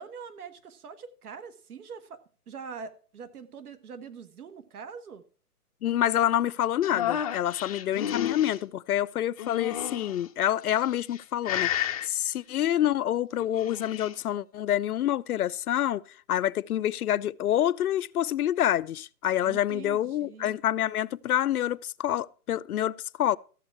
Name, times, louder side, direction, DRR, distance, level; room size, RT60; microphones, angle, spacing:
voice 1, 0.0-5.2 19.4-20.5, right 6 dB, 65° right, 1.7 m, -43 dB
voice 2, 5.8-11.7 12.0-16.0 16.3-23.4, left 11 dB, 65° left, 0.5 m, -27 dB
sound 1, 6.8-8.6 9.4-10.2 10.9-11.2 11.4-12.1 13.4-14.1, left 11 dB, 25° left, 0.6 m, -31 dB
14.0 x 7.3 x 4.6 m
hypercardioid pair, 145°, 48 cm